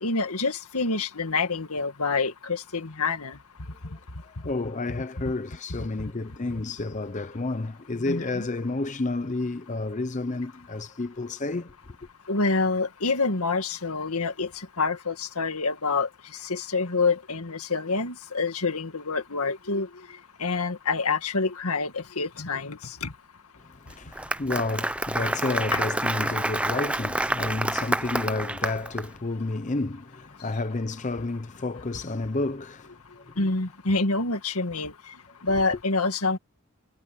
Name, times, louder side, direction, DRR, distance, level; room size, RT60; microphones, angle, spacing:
voice 1, 0.0-3.4 8.1-8.4 12.3-14.5 14.8-16.1 16.5-19.9 20.4-23.1 25.7-25.8 33.4-34.9 35.4-36.4, left 3 dB, 85° left, 2.0 m, -27 dB
voice 2, 4.2-11.8 23.6-33.5, left 2 dB, 35° left, 0.7 m, -31 dB
Applause, 23.9-29.1, right 1 dB, 5° right, 0.5 m, -28 dB
head